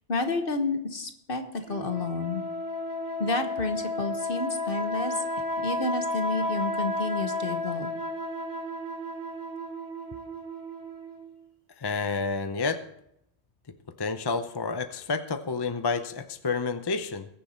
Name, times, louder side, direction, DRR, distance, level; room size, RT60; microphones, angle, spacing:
voice 1, 0.1-2.4 3.2-5.2 5.6-8.0, left 3 dB, 55° left, 6 dB, 1.4 m, -30 dB
sound 1, 1.7-11.4, left 1 dB, 45° right, 1.4 m, -33 dB
voice 2, 11.8-12.8 14.0-17.3, left 4 dB, 30° left, 9 dB, 0.6 m, -29 dB
21.0 x 7.0 x 4.3 m, 0.75 s
omnidirectional pair, 1.1 m